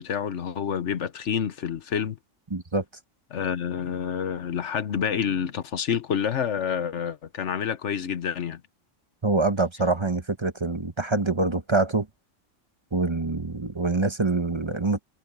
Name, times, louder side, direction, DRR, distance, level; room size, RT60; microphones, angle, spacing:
voice 1, 0.0-2.2 3.3-8.6, left 8 dB, 70° left, 1.3 m, -28 dB
voice 2, 2.5-2.8 9.2-12.1 12.9-15.0, right 3 dB, 25° right, 1.0 m, -25 dB
omnidirectional pair, 1.3 m